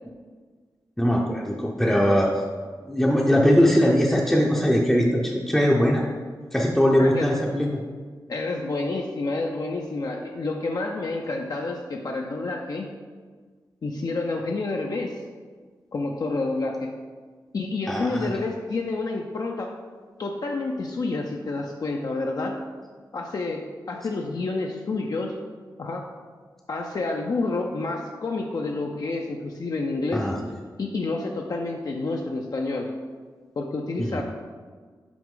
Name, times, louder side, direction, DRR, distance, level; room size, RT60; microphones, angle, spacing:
voice 1, 1.0-2.3 2.9-6.1 6.5-7.8 17.9-18.3 30.1-30.3 34.0-34.2, equal, 5° left, -3 dB, 0.6 m, -21 dB
voice 2, 7.0-7.4 8.3-12.9 13.8-15.2 15.9-16.9 17.5-19.7 20.2-22.6 23.1-25.3 25.8-26.1 26.7-30.3 30.8-32.9 33.6-34.2, left 3 dB, 55° left, 1 dB, 0.5 m, -29 dB
6.0 x 4.8 x 3.7 m, 1.5 s
wide cardioid pair, 95°, 8 cm